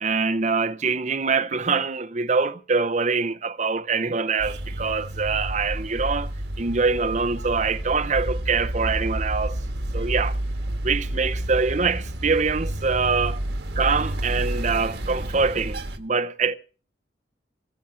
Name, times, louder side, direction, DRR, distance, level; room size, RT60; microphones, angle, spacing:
voice 1, 0.0-6.3 6.6-9.6 9.9-10.4 10.8-13.4 13.8-16.5, right 4 dB, 40° right, 0.7 m, -24 dB
sound 1, 4.4-16.0, right 1 dB, 65° right, 1.4 m, -30 dB
18.5 x 7.0 x 7.5 m
head